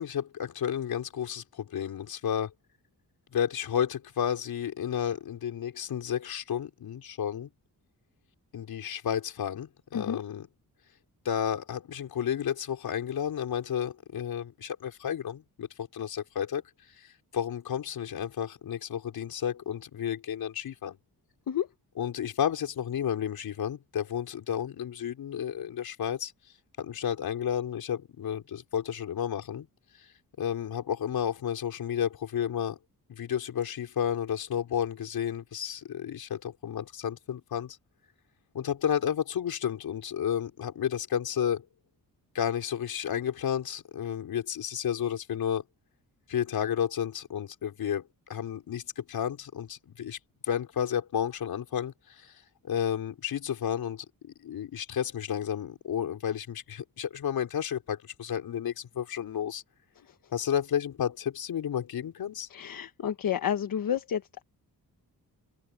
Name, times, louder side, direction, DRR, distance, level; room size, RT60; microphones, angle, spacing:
voice 1, 0.0-2.5 3.3-7.5 8.5-10.5 11.2-16.6 17.0-21.0 22.0-26.3 26.8-29.7 30.0-30.1 30.4-32.8 33.1-37.8 38.5-41.6 42.3-45.6 46.3-50.2 50.4-59.6 60.3-62.5, left 9 dB, 85° left, 4.4 m, -32 dB
voice 2, 62.5-64.4, left 9 dB, 70° left, 1.3 m, -30 dB
wide cardioid pair, 120°, 35 cm